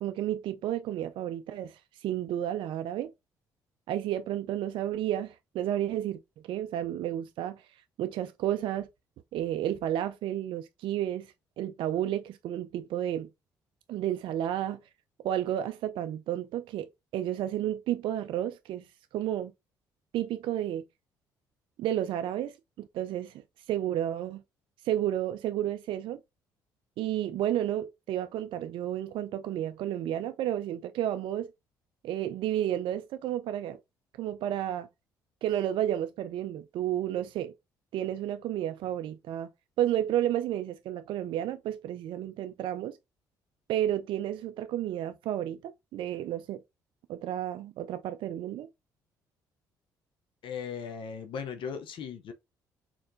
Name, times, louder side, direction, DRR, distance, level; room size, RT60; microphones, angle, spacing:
voice 1, 0.0-3.1 3.9-7.6 8.0-8.9 9.3-13.3 13.9-14.8 15.2-16.9 17.1-18.8 19.1-19.5 20.1-20.8 21.8-23.4 23.7-24.4 24.8-26.2 27.0-31.5 32.0-33.8 34.2-34.9 35.4-37.5 37.9-39.5 39.8-43.0 43.7-46.6 47.1-48.7, right 11 dB, 60° right, 0.3 m, -31 dB
voice 2, 50.4-52.3, left 6 dB, 60° left, 0.6 m, -37 dB
4.2 x 2.9 x 2.5 m
hypercardioid pair, 50°, 10 cm